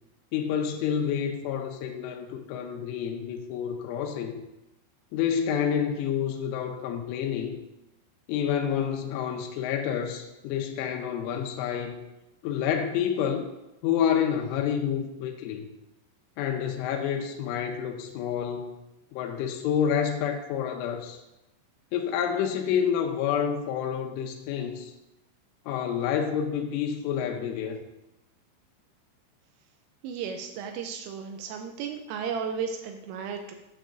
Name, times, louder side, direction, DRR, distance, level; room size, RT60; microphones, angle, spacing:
voice 1, 0.3-4.4 5.1-7.5 8.3-12.0 12.4-13.5 13.8-15.7 16.4-18.7 19.1-21.2 21.9-24.9 25.7-27.8, left 8 dB, 85° left, 3 dB, 2.9 m, -28 dB
voice 2, 30.0-33.6, right 6 dB, 85° right, 4 dB, 3.0 m, -34 dB
9.0 x 7.1 x 2.5 m, 0.95 s
omnidirectional pair, 6.0 m